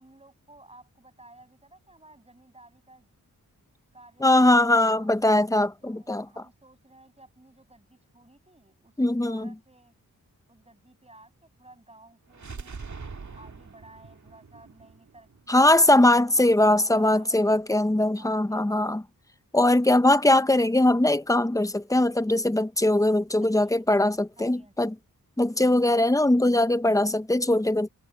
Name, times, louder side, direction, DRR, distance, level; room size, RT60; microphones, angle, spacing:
voice 1, 0.0-3.1 3.9-4.3 4.6-5.1 5.8-10.0 10.5-13.1 13.3-16.4 16.7-17.5 18.0-18.9 23.4-23.8 24.4-24.9 25.9-26.3, right 2 dB, 15° right, 6.9 m, -54 dB
voice 2, 4.2-6.2 9.0-9.5 15.5-19.0 19.5-24.9 25.4-27.9, left 1 dB, 10° left, 0.8 m, -21 dB
sound 1, 12.3-16.2, right 4 dB, 50° right, 2.2 m, -43 dB
wide cardioid pair, 85°, 35 cm